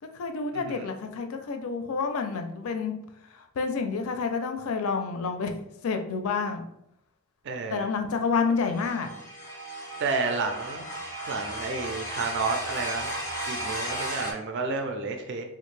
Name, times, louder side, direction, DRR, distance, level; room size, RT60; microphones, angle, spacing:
voice 1, 0.0-2.9 3.3-5.5 5.8-6.7 7.7-9.1, left 5 dB, 75° left, 6 dB, 0.4 m, -29 dB
voice 2, 0.5-0.9 7.4-7.8 10.0-10.9 11.3-13.2 13.5-15.4, right 4 dB, 55° right, 4 dB, 0.4 m, -31 dB
sound 1, 8.6-14.3, right 1 dB, 15° left, 0.5 m, -35 dB
3.4 x 2.5 x 3.2 m, 0.79 s
head